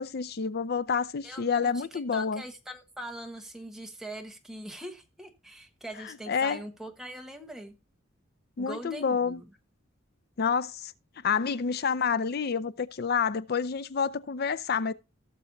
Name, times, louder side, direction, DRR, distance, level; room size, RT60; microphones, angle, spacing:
voice 1, 0.0-2.4 6.3-6.6 8.6-9.4 10.4-10.9 11.2-14.9, left 6 dB, 50° left, 0.5 m, -28 dB
voice 2, 1.2-7.7 8.6-9.5, right 1 dB, ahead, 1.3 m, -42 dB
16.5 x 6.9 x 2.7 m
head